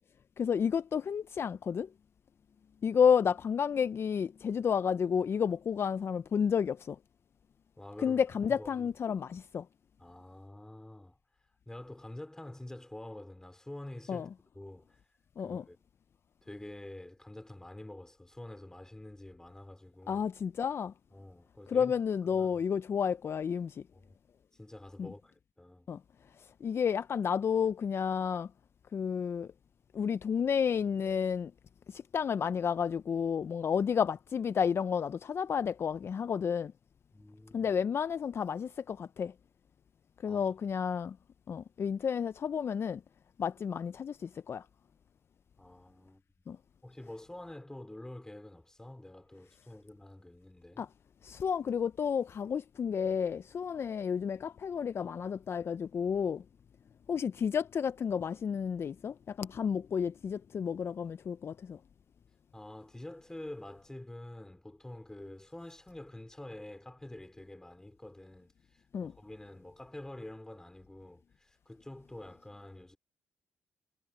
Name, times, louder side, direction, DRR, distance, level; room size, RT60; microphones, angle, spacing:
voice 1, 0.4-1.9 2.8-7.0 8.0-9.6 14.1-14.3 15.4-15.6 20.1-20.9 21.7-23.8 25.0-25.1 25.9-26.0 26.6-28.5 28.9-29.5 29.9-31.5 31.9-36.7 37.5-39.3 40.2-41.2 41.5-43.0 43.4-44.6 46.5-46.6 50.8-50.9 51.2-56.4 57.1-61.8 68.9-69.1, left 7 dB, 50° left, 0.5 m, -31 dB
voice 2, 7.8-8.2 8.6-8.9 10.0-11.2 11.7-15.0 15.4-15.8 16.4-20.3 21.1-21.9 22.3-22.6 23.9-24.0 24.5-25.9 37.1-37.7 40.2-40.5 45.6-46.2 46.8-50.9 62.5-73.0, left 1 dB, 10° left, 4.3 m, -47 dB
supercardioid pair, 65°, 5 cm